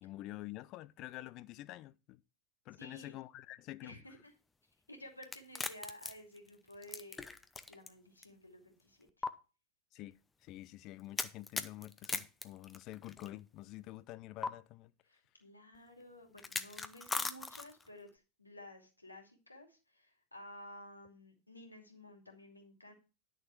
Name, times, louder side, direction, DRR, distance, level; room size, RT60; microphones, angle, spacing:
voice 1, 0.0-2.2 2.7-4.0 9.9-14.9, left 16 dB, 40° left, 0.5 m, -48 dB
voice 2, 2.8-3.2 3.8-4.3 4.9-7.3 7.7-9.2 15.0-22.9, left 1 dB, 85° left, 2.6 m, -54 dB
sound 1, 5.2-7.9 8.2-8.3 9.2-9.3 11.2-13.3 14.4-14.5 16.4-17.9, left 3 dB, 10° left, 0.8 m, -39 dB
11.0 x 6.7 x 4.5 m
figure-of-eight pair, 90°, 0 cm